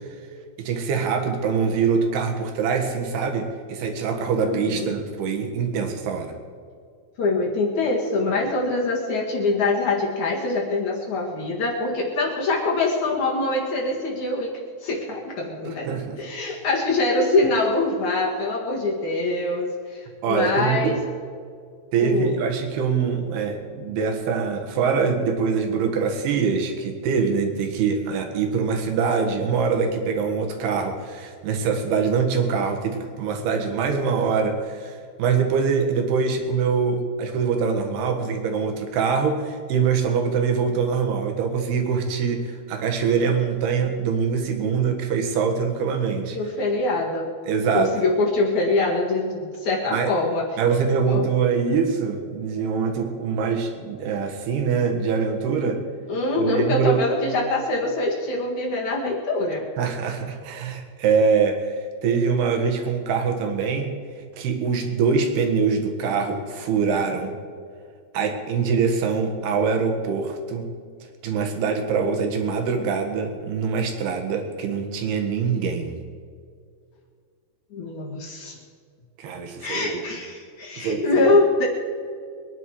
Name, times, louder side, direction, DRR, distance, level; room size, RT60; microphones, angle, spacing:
voice 1, 0.6-3.4 3.7-6.3 15.9-16.2 20.2-21.0 21.9-46.4 47.5-47.9 49.9-50.1 50.6-55.8 56.4-57.0 59.8-61.8 62.0-63.9 64.4-67.4 68.1-70.7 71.2-76.0 79.2-80.0 80.8-81.4, right 5 dB, 65° right, 4 dB, 3.4 m, -24 dB
voice 2, 4.4-4.9 7.2-14.5 14.8-15.9 16.2-21.0 22.0-22.4 46.3-47.3 47.7-50.5 51.1-51.3 56.1-59.6 77.7-78.5 79.6-81.7, left 2 dB, 50° left, -1 dB, 2.6 m, -24 dB
23.0 x 10.5 x 4.8 m, 2.2 s
omnidirectional pair, 5.1 m